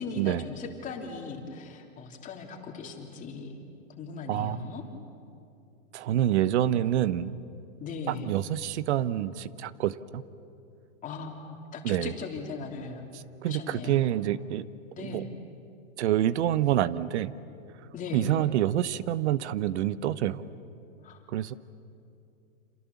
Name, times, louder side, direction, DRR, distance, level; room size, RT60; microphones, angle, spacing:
voice 1, 0.0-3.6 4.0-4.8 7.8-8.3 11.0-13.0 13.4-14.1 14.9-15.3 17.9-18.3 21.0-21.2, left 4 dB, 20° left, 1 dB, 3.2 m, -38 dB
voice 2, 4.3-4.7 5.9-7.4 8.1-10.2 11.8-12.1 13.1-14.6 15.0-15.2 16.0-17.3 18.1-20.4 21.3-21.5, right 12 dB, 60° right, 16 dB, 1.0 m, -27 dB
28.0 x 27.5 x 7.1 m, 2.7 s
hypercardioid pair, 140°, 39 cm